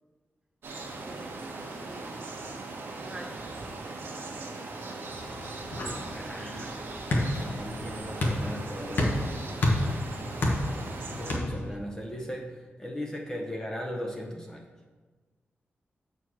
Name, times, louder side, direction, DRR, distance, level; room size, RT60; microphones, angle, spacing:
sound 1, 0.6-11.4, right 3 dB, 70° right, 1.1 m, -39 dB
voice 1, 1.0-4.8 5.7-6.5 6.8-8.7 11.5-11.8, right 1 dB, 20° right, 1 dB, 1.0 m, -50 dB
sound 2, 5.1-11.7, left 1 dB, 60° left, 1.2 m, -31 dB
voice 2, 6.0-6.8 7.3-9.3 11.2-14.6, equal, 15° left, 0 dB, 0.7 m, -38 dB
7.0 x 4.6 x 6.1 m, 1.4 s
wide cardioid pair, 155°, 4 cm